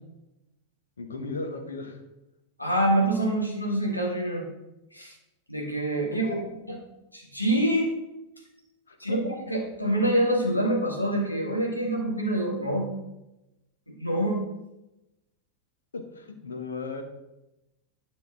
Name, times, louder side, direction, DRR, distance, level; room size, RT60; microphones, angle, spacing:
voice 1, 1.0-2.0 6.1-6.4 8.9-9.2 15.9-17.0, left 3 dB, 70° left, 6 dB, 1.1 m, -36 dB
voice 2, 2.6-4.4 4.9-5.1 5.5-6.3 7.1-7.9 9.0-12.9 13.9-14.4, right 1 dB, 85° left, -1 dB, 1.8 m, -26 dB
10.0 x 6.8 x 3.7 m, 0.95 s
figure-of-eight pair, 90°, 0 cm